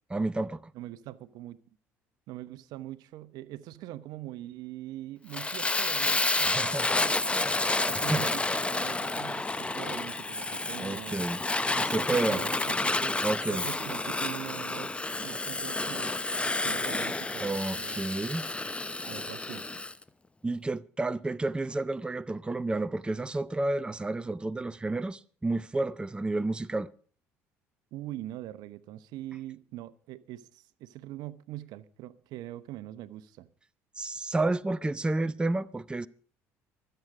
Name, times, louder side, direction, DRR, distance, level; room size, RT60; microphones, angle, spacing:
voice 1, 0.1-0.7 6.4-6.9 7.9-8.3 10.8-11.4 11.9-12.4 13.2-13.6 17.4-18.4 20.4-26.9 34.0-36.1, right 2 dB, 15° right, 0.6 m, -30 dB
voice 2, 0.7-1.6 2.3-7.6 7.8-11.3 11.7-13.2 13.5-16.1 16.4-18.0 19.0-19.6 27.9-33.5, right 14 dB, 65° right, 0.9 m, -42 dB
Fire, 5.3-19.9, left 2 dB, 15° left, 0.9 m, -30 dB
23.5 x 8.1 x 4.9 m
hypercardioid pair, 65°, 7 cm